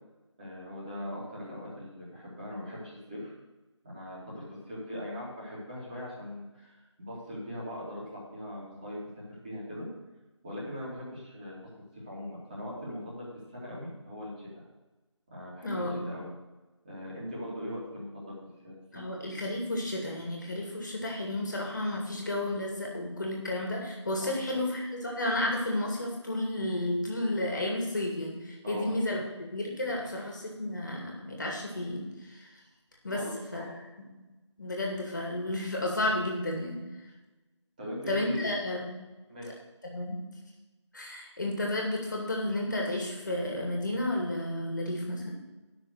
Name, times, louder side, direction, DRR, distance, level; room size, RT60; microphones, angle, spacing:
voice 1, 0.4-3.3 3.8-9.0 9.4-9.9 10.4-11.6 11.9-13.3 13.5-14.5 15.3-16.3 16.8-18.3 18.6-19.1 24.2-24.3 28.6-28.9 33.1-33.3 33.7-33.8 37.8-38.5 39.3-39.6, equal, 15° right, -7 dB, 2.7 m, -40 dB
voice 2, 15.6-16.2 18.9-29.2 29.5-32.6 33.0-33.2 33.5-33.8 34.6-36.8 38.1-39.0 39.8-40.2 40.9-45.3, left 1 dB, 40° left, 0 dB, 2.4 m, -32 dB
11.5 x 6.2 x 6.6 m, 1.1 s
figure-of-eight pair, 170°, 16 cm